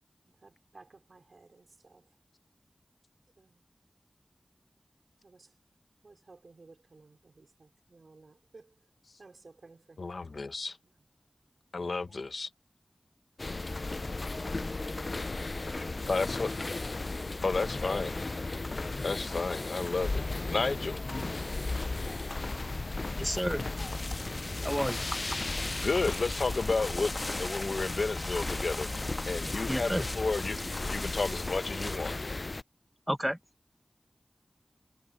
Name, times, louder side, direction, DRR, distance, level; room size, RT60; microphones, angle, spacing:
voice 1, 0.3-2.2 3.4-3.7 5.2-5.6 6.0-8.7 9.2-10.2 10.8-11.1 12.0-12.2, right 3 dB, 80° right, 4.7 m, -57 dB
voice 2, 10.0-10.8 11.7-12.5 16.1-16.5 17.4-18.2 19.0-21.0 25.8-28.9 29.3-32.1, left 3 dB, 85° left, 1.0 m, -32 dB
sound 1, 13.4-32.6, left 2 dB, 55° left, 0.4 m, -35 dB
voice 3, 23.2-23.6 24.6-25.2 29.7-30.0 33.1-33.4, equal, 5° right, 0.8 m, -31 dB
sound 2, 23.8-32.0, left 2 dB, 35° left, 2.1 m, -40 dB
wide cardioid pair, 65°, 0 cm